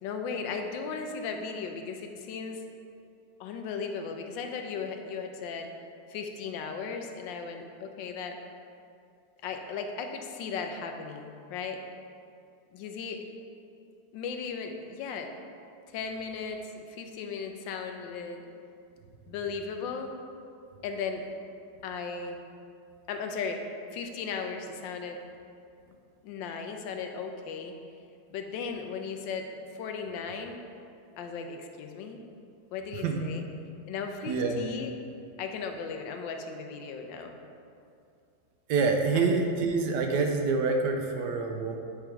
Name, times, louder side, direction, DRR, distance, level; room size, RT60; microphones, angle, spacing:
voice 1, 0.0-2.6 3.4-5.7 6.1-8.4 9.4-11.8 12.7-13.3 14.1-15.3 15.9-18.5 19.3-20.1 20.8-21.2 21.8-22.4 23.1-25.2 26.2-27.7 28.3-30.6 31.2-32.2 32.7-33.4 33.9-34.9 35.4-37.4 39.1-39.5, left 5 dB, 85° left, 5 dB, 1.3 m, -36 dB
voice 2, 34.3-34.6 38.7-41.8, right 4 dB, 75° right, 3 dB, 1.1 m, -26 dB
8.6 x 3.5 x 4.5 m, 2.5 s
omnidirectional pair, 2.0 m